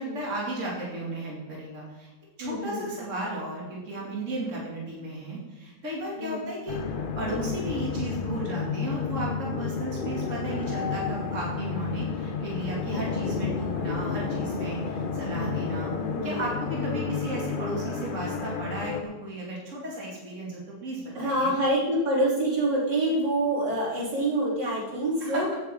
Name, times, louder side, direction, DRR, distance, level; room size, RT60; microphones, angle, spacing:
voice 1, 0.0-2.1 2.4-6.8 7.2-15.9 16.2-21.5 25.2-25.5, right 1 dB, 45° right, -4 dB, 3.1 m, -35 dB
voice 2, 2.4-2.9 6.2-6.5 16.0-16.4 16.7-17.1 21.1-25.5, right 1 dB, 80° right, -6 dB, 4.3 m, -27 dB
sound 1, 6.7-19.0, left 5 dB, 80° left, 0.4 m, -31 dB
15.5 x 8.4 x 3.9 m, 1.2 s
omnidirectional pair, 1.9 m